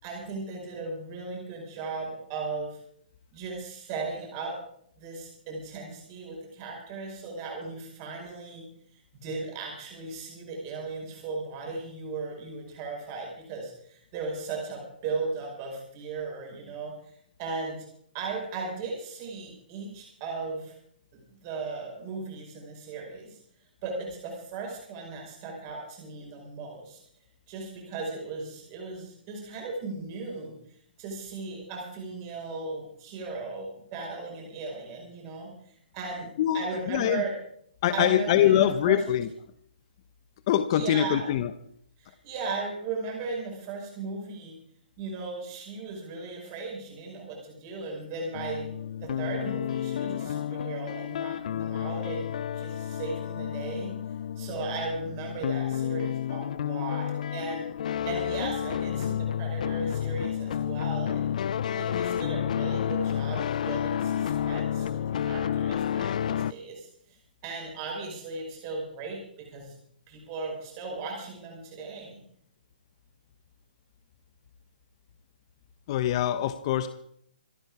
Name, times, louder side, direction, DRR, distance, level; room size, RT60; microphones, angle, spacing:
voice 1, 0.0-2.8 3.3-4.6 5.0-8.6 9.1-16.9 17.4-17.8 18.1-20.7 21.4-23.4 23.8-27.0 27.5-30.6 31.0-35.5 35.9-36.3 36.5-37.3 37.9-39.0 40.7-41.3 42.0-44.6 45.0-48.7 49.0-53.9 54.4-57.7 58.1-61.2 61.7-66.9 67.4-69.7 70.1-72.2, right 4 dB, 25° right, 0 dB, 5.3 m, -36 dB
voice 2, 36.4-37.2 37.8-39.3 40.5-41.5 75.9-76.9, left 11 dB, 30° left, 11 dB, 0.9 m, -24 dB
sound 1, 48.3-66.5, left 9 dB, 45° left, 0.5 m, -30 dB
26.0 x 9.1 x 4.9 m, 0.67 s
hypercardioid pair, 160°, 5 cm